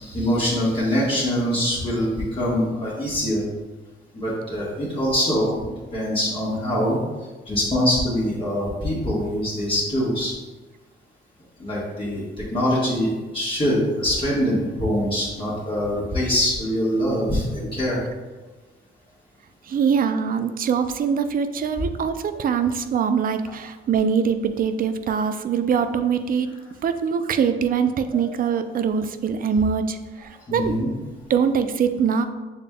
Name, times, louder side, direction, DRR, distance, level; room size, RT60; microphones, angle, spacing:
voice 1, 0.0-3.4 4.1-5.6 5.9-7.0 7.5-10.3 11.6-18.0 28.1-28.2 30.5-30.9, equal, 25° left, -8 dB, 1.3 m, -23 dB
voice 2, 19.7-26.5 26.8-30.8 31.3-32.2, right 6 dB, 45° right, 9 dB, 0.4 m, -23 dB
6.9 x 3.4 x 2.2 m, 1.2 s
cardioid pair, 90°, 20 cm